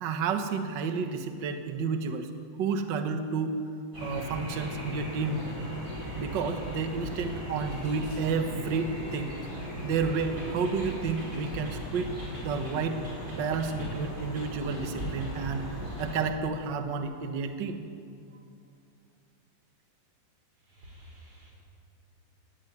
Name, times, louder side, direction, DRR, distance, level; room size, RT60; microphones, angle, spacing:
voice 1, 0.0-2.3 2.6-3.6 4.0-5.4 6.1-9.3 9.8-12.1 12.4-13.0 13.3-15.7 16.0-17.8, right 5 dB, 90° right, 7 dB, 1.0 m, -31 dB
sound 1, 3.9-16.2, equal, 20° right, 5.6 m, -37 dB
voice 2, 20.7-21.5, equal, 40° right, -2 dB, 6.7 m, -51 dB
17.0 x 16.5 x 9.4 m, 2.3 s
omnidirectional pair, 4.0 m